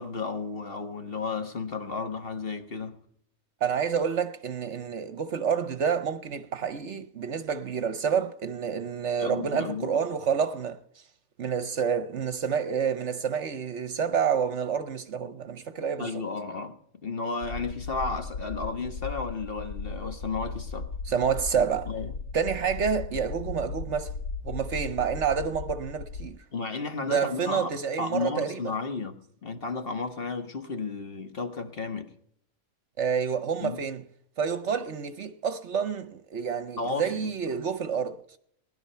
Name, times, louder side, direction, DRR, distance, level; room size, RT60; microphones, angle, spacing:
voice 1, 0.0-3.0 6.6-6.7 9.2-10.0 16.0-20.9 21.9-22.1 26.5-32.1 33.6-33.8 36.8-37.3, left 4 dB, 40° left, 1.4 m, -33 dB
voice 2, 3.6-10.8 11.4-16.2 21.1-21.9 22.3-24.1 24.4-26.4 27.0-28.6 33.0-34.0 34.4-38.2, right 7 dB, 60° right, 1.0 m, -28 dB
sound 1, 17.4-26.3, left 4 dB, 70° left, 1.3 m, -37 dB
19.5 x 11.0 x 5.6 m
omnidirectional pair, 1.5 m